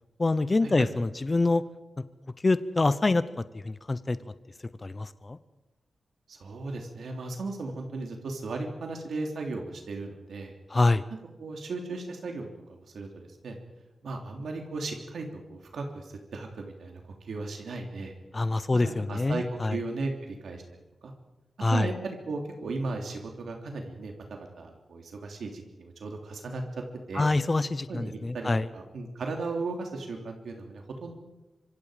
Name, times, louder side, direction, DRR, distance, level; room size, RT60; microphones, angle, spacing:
voice 1, 0.2-1.6 2.4-3.2 3.5-4.2 4.8-5.4 10.7-11.0 18.3-19.8 21.6-21.9 27.1-28.7, left 2 dB, 25° left, 14 dB, 0.8 m, -25 dB
voice 2, 6.3-10.5 11.4-13.6 14.0-18.1 18.7-19.4 19.7-20.6 21.0-21.1 21.7-26.6 27.1-27.3 27.9-31.1, right 3 dB, 85° right, 2 dB, 3.2 m, -36 dB
25.5 x 25.0 x 5.1 m, 1.0 s
wide cardioid pair, 140°, 0 cm